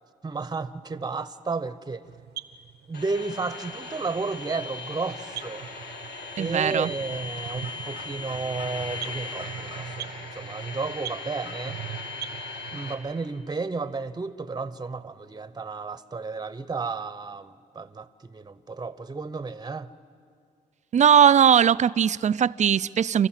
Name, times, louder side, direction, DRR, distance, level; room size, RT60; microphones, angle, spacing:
voice 1, 0.2-2.0 2.9-5.7 6.4-11.8 12.7-19.9, right 4 dB, 25° right, 0.9 m, -32 dB
sound 1, 2.0-13.0, right 10 dB, 80° right, 0.8 m, -42 dB
sound 2, 2.9-12.9, left 3 dB, 80° left, 2.6 m, -38 dB
voice 2, 6.4-6.9 20.9-23.3, right 8 dB, 45° right, 0.5 m, -19 dB
29.5 x 13.5 x 7.4 m
cardioid pair, 65°, 17 cm